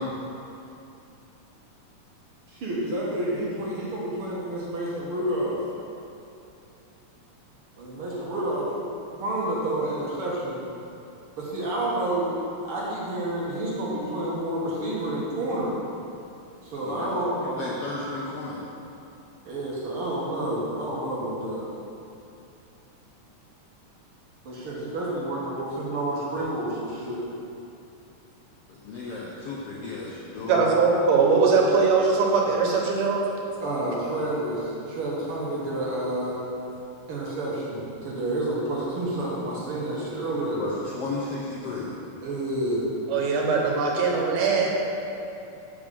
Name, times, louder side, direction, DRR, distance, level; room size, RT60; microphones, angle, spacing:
voice 1, 2.5-5.6 7.8-8.8 9.2-10.6 11.3-12.3 12.6-15.8 16.6-17.7 19.4-21.7 24.4-27.2 33.6-36.4 37.1-40.6 42.2-42.8 43.4-43.6, right 1 dB, 55° right, -6 dB, 1.6 m, -29 dB
voice 2, 17.5-18.6 28.8-30.7 40.6-41.9, left 3 dB, 75° left, -5 dB, 1.4 m, -34 dB
voice 3, 30.5-33.2 43.1-44.7, right 4 dB, 80° right, -1 dB, 2.6 m, -21 dB
7.0 x 4.9 x 6.8 m, 2.7 s
omnidirectional pair, 3.7 m